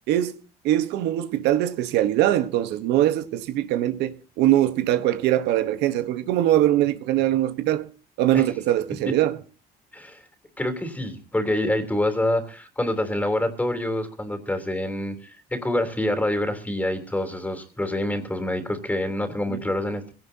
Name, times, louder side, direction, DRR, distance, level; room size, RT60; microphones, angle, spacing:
voice 1, 0.6-7.9 8.2-9.4 19.5-19.6, right 13 dB, 90° right, 1.1 m, -22 dB
voice 2, 10.6-20.1, left 1 dB, 10° left, 3.2 m, -26 dB
22.5 x 17.0 x 2.8 m
cardioid pair, 110°, 17 cm